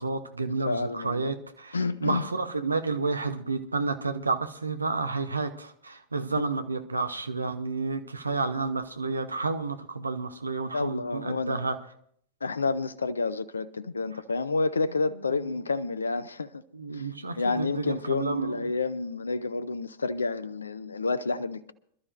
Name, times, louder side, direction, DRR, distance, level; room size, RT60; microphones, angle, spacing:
voice 1, 0.0-11.8 16.7-18.7, right 3 dB, 80° right, 1.0 m, -30 dB
voice 2, 0.7-1.3 1.7-2.3 10.7-11.6 12.4-16.6 16.9-17.1 17.4-21.7, left 3 dB, 75° left, 0.6 m, -29 dB
26.0 x 12.5 x 2.6 m
figure-of-eight pair, 90°, 0 cm